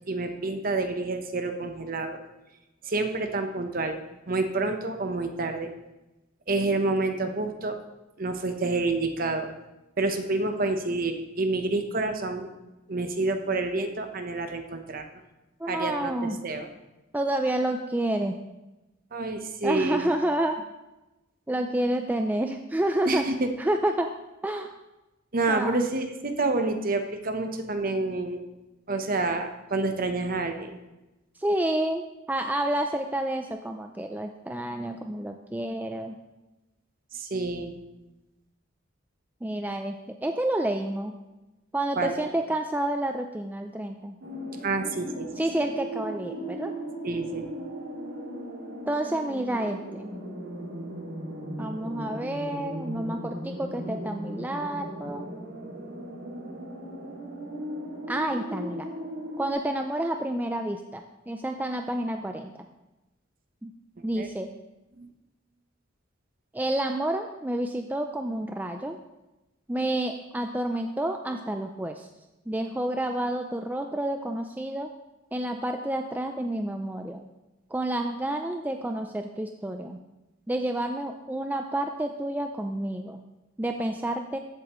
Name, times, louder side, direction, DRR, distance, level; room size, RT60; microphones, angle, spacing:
voice 1, 0.1-2.2 2.8-4.0 4.3-5.7 6.5-7.8 8.2-9.5 10.0-12.5 12.9-15.0 15.7-16.7 19.1-20.1 23.1-23.5 25.3-28.4 28.9-30.7 37.1-37.7 42.0-42.3 44.6-45.3 47.0-47.5 64.2-64.3 65.0-65.1, right 3 dB, 45° right, 6 dB, 0.9 m, -28 dB
voice 2, 15.6-16.4 17.1-18.4 19.6-20.6 21.5-23.3 23.6-24.1 24.4-24.7 25.5-25.8 31.4-36.2 39.4-41.1 41.7-44.2 45.4-46.7 48.9-50.1 51.6-55.3 58.1-58.9 59.4-62.7 63.6-63.7 64.0-64.5 66.5-69.0 69.7-72.1 72.5-74.9 75.3-77.2 77.7-80.0 80.5-83.2 83.6-84.4, right 1 dB, 10° right, 5 dB, 0.4 m, -29 dB
sound 1, 44.2-59.5, right 1 dB, 75° right, 2.3 m, -37 dB
14.0 x 8.0 x 3.0 m, 1.0 s
head